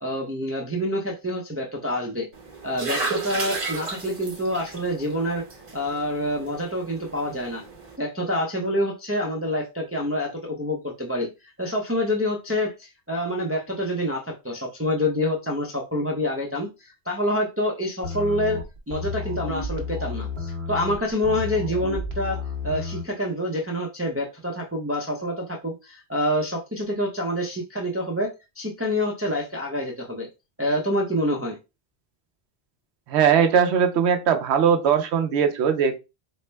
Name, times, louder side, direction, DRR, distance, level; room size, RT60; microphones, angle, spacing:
voice 1, 0.0-2.3 2.6-5.4 5.7-7.6 8.0-18.6 18.9-22.4 22.6-28.3 28.6-30.3 30.6-31.6, left 1 dB, 20° right, 0 dB, 0.5 m, -27 dB
sound 1, 2.3-8.0, right 4 dB, 40° right, 0.8 m, -34 dB
sound 2, 18.0-23.1, left 4 dB, 70° right, 1.1 m, -32 dB
voice 2, 33.1-36.0, right 7 dB, 90° right, 7 dB, 0.9 m, -20 dB
4.2 x 2.1 x 3.2 m, 0.26 s
omnidirectional pair, 1.1 m